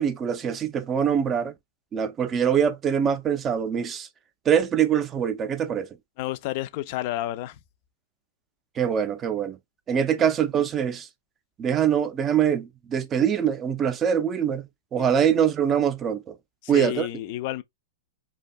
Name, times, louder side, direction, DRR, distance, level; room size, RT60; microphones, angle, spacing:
voice 1, 0.0-1.5 1.9-4.1 4.5-5.9 8.8-9.6 9.9-11.1 11.6-16.3 16.7-17.1, right 8 dB, 25° right, 0.4 m, -23 dB
voice 2, 6.2-7.6 16.6-17.6, left 15 dB, 50° left, 0.3 m, -30 dB
2.6 x 2.2 x 2.5 m
hypercardioid pair, 125°, 0 cm